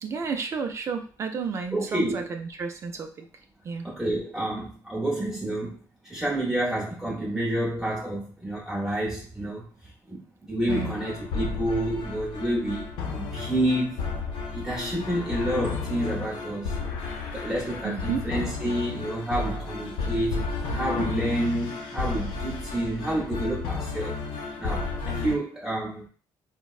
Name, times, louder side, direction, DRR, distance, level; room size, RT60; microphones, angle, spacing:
voice 1, 0.0-3.3 3.7-3.9 10.7-10.9 17.8-18.2, right 5 dB, 35° right, 0.4 m, -32 dB
voice 2, 1.7-2.3 3.8-14.0 14.5-16.8 17.3-26.1, right 1 dB, 5° right, 0.7 m, -29 dB
sound 1, 10.7-25.3, left 4 dB, 80° left, 0.6 m, -32 dB
4.3 x 2.0 x 2.3 m
cardioid pair, 150°, 8 cm